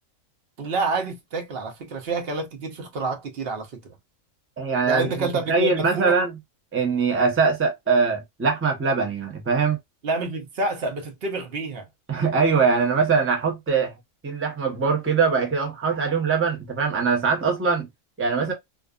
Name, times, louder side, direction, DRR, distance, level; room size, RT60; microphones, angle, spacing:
voice 1, 0.6-3.9 4.9-6.2 10.0-11.9, right 3 dB, 55° right, 0.8 m, -28 dB
voice 2, 4.6-6.3 6.7-9.8 12.1-13.9 14.2-17.9 18.2-18.5, right 5 dB, 15° right, 0.4 m, -22 dB
2.4 x 2.4 x 2.3 m
omnidirectional pair, 1.4 m